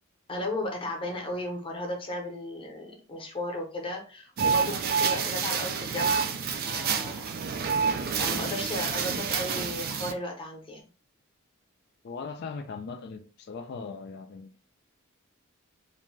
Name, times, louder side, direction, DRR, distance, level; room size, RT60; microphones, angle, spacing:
voice 1, 0.3-7.3 8.2-10.8, left 1 dB, 25° left, 0.7 m, -35 dB
sound 1, 4.4-10.1, right 6 dB, 45° right, 0.4 m, -28 dB
voice 2, 12.0-14.6, left 4 dB, 50° left, 0.3 m, -39 dB
2.5 x 2.2 x 3.2 m
head